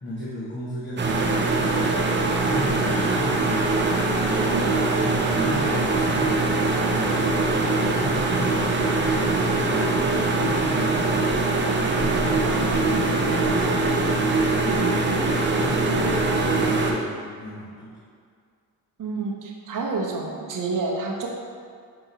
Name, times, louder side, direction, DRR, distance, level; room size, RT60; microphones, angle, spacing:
voice 1, 0.0-3.9 5.0-7.4 7.7-11.4 12.0-15.0 15.6-17.9, equal, 25° left, -8 dB, 1.1 m, -35 dB
sound 1, 1.0-16.9, right 3 dB, 25° right, 0.6 m, -22 dB
voice 2, 19.0-21.3, right 3 dB, 50° right, 0 dB, 0.9 m, -29 dB
5.7 x 2.6 x 3.1 m, 2.1 s
supercardioid pair, 50°, 41 cm